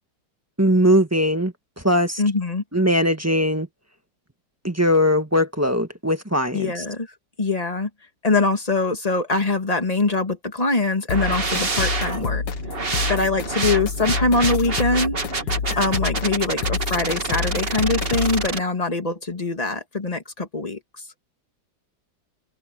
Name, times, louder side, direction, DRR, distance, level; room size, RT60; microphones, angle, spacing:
voice 1, 0.6-1.5 1.8-2.2 2.7-3.7 4.6-6.7, equal, 10° right, 1.5 m, -20 dB
voice 2, 2.2-2.6 6.5-7.1 7.4-7.9 8.2-12.4 12.7-15.2 15.8-20.8, left 3 dB, 20° left, 2.2 m, -23 dB
sound 1, 11.1-18.5, left 5 dB, 80° left, 2.1 m, -28 dB
sound 2, 11.1-18.6, right 3 dB, 30° right, 2.2 m, -28 dB
open air
omnidirectional pair, 1.9 m